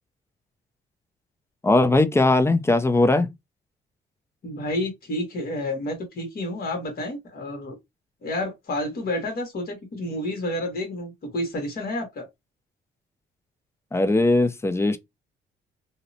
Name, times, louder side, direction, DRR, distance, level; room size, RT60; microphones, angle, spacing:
voice 1, 1.6-3.3 13.9-15.0, left 2 dB, 15° left, 0.4 m, -19 dB
voice 2, 4.4-7.8 8.2-12.3, left 1 dB, 50° left, 1.2 m, -30 dB
2.7 x 2.0 x 2.6 m
cardioid pair, 90°, 20 cm